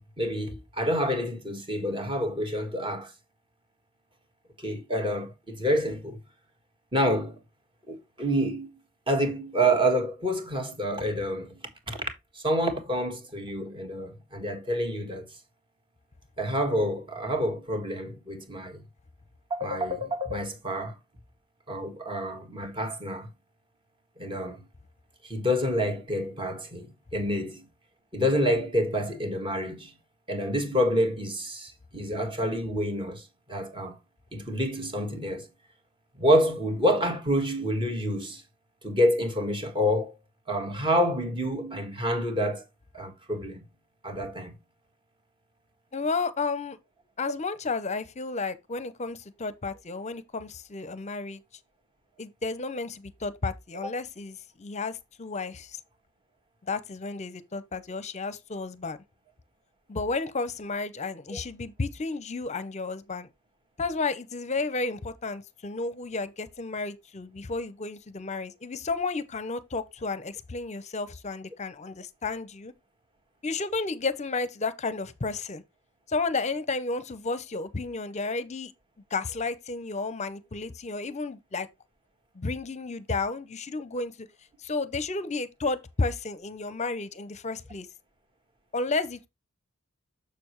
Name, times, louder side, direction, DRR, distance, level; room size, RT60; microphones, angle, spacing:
voice 1, 0.0-3.1 4.6-6.2 6.9-7.3 7.9-8.7 9.1-11.5 11.9-12.0 12.3-15.3 16.4-18.8 19.5-21.0 21.7-23.3 24.2-24.6 25.2-27.6 28.1-29.9 30.3-34.0 34.3-35.5 36.2-38.4 38.8-40.1 40.5-42.6 42.9-43.6 44.0-44.5 53.7-53.9 61.3-61.4, equal, 25° right, 1.6 m, -28 dB
voice 2, 45.9-46.8 47.2-51.4 52.2-55.8 56.7-59.0 59.9-63.3 63.8-72.7 73.4-75.6 76.1-78.7 79.1-81.7 82.3-84.3 84.6-87.9 88.7-89.3, left 3 dB, 35° left, 0.7 m, -32 dB
6.8 x 6.8 x 3.1 m
head